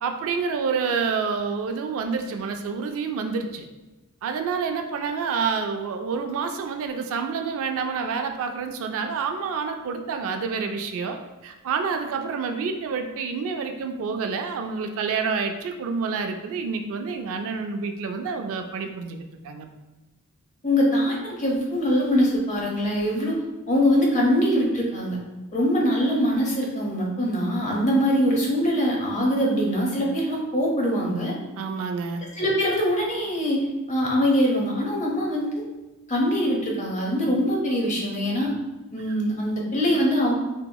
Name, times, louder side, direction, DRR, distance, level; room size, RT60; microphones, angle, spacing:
voice 1, 0.0-3.7 4.2-11.2 11.4-19.7 31.6-32.2, right 5 dB, 65° right, 6 dB, 0.3 m, -28 dB
voice 2, 20.6-23.4 23.7-25.2 25.5-31.3 32.3-35.6 36.1-38.5 38.9-40.3, equal, 35° left, -2 dB, 0.7 m, -23 dB
2.9 x 2.7 x 2.2 m, 1.1 s
head